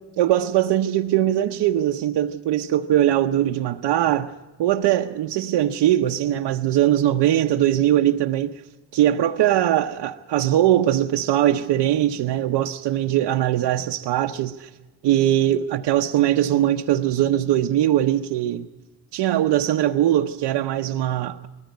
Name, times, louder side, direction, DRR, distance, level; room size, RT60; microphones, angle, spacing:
voice 1, 0.2-4.3 4.6-8.5 8.9-14.7 15.0-18.7 19.1-21.5, right 12 dB, 80° right, 0.8 m, -21 dB
20.0 x 14.5 x 9.3 m
cardioid pair, 90°, 42 cm